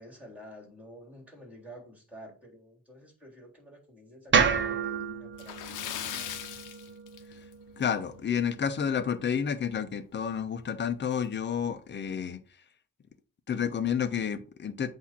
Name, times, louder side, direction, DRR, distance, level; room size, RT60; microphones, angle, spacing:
voice 1, 0.0-6.6, equal, 5° right, 0 dB, 3.6 m, -50 dB
sound 1, 4.3-8.5, right 6 dB, 40° right, 1.1 m, -30 dB
Splash splatter, 5.3-7.7 8.0-8.2 8.6-8.7 10.2-10.3 10.6-10.7 11.3-11.6, left 11 dB, 85° left, 0.8 m, -39 dB
voice 2, 7.8-12.4 13.5-14.9, left 7 dB, 35° left, 9 dB, 0.9 m, -30 dB
8.2 x 2.9 x 5.9 m, 0.39 s
cardioid pair, 90°, 30 cm